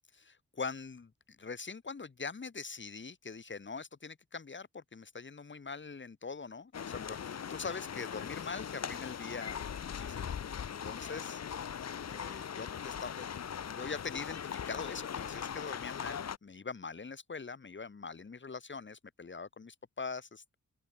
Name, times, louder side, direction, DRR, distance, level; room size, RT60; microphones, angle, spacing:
voice 1, 0.2-1.1 1.4-10.3 10.7-11.4 12.1-20.6, left 4 dB, 35° left, 2.5 m, -43 dB
sound 1, 6.7-16.4, left 8 dB, 55° left, 1.0 m, -40 dB
open air
wide cardioid pair, 130°, 31 cm